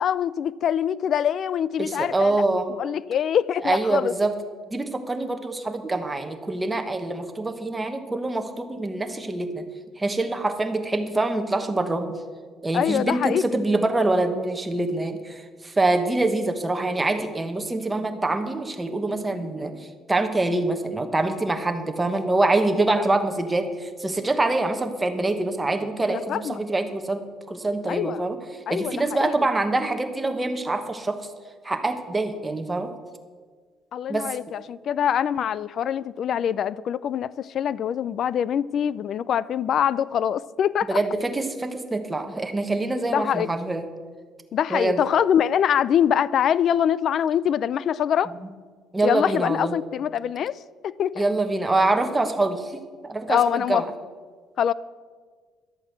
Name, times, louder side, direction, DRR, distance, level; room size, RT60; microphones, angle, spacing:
voice 1, 0.0-2.4 2.8-4.1 12.7-13.4 26.1-26.6 27.9-28.2 28.7-29.4 33.9-41.0 43.1-43.5 44.5-48.3 49.0-51.2 53.3-53.8 54.6-54.7, left 9 dB, 45° left, 0.4 m, -24 dB
voice 2, 1.8-2.7 3.6-4.3 4.7-9.7 10.0-12.2 12.6-31.3 31.6-32.9 34.1-34.4 40.9-43.8 44.7-45.0 48.3-48.4 48.9-49.8 51.1-53.9, right 2 dB, 10° right, 1.2 m, -25 dB
12.0 x 8.5 x 7.9 m
cardioid pair, 140°, 0 cm